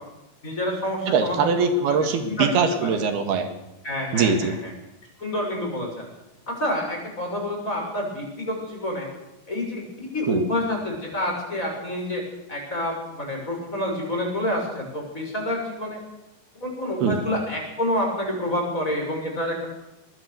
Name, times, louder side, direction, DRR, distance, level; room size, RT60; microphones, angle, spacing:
voice 1, 0.4-1.5 1.9-2.0 2.3-2.5 2.8-3.0 3.8-4.7 5.2-6.1 6.5-9.1 9.5-12.2 12.5-16.0 16.6-19.7, left 1 dB, 20° left, 0 dB, 7.0 m, -28 dB
voice 2, 1.1-3.5 4.1-4.6 10.3-10.4 17.0-17.2, right 5 dB, 85° right, 7 dB, 3.9 m, -22 dB
23.5 x 20.5 x 7.0 m, 0.92 s
omnidirectional pair, 4.4 m